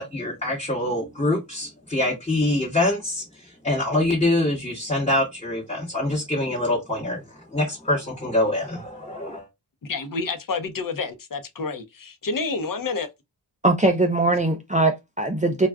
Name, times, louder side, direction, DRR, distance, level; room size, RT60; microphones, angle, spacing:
voice 1, 0.0-3.2 3.6-7.2 7.5-9.5, left 1 dB, 15° left, 1.1 m, -24 dB
voice 2, 9.8-13.1, left 4 dB, 50° left, 0.8 m, -29 dB
voice 3, 13.6-15.7, right 2 dB, 15° right, 0.5 m, -21 dB
2.3 x 2.3 x 3.5 m
cardioid pair, 45°, 44 cm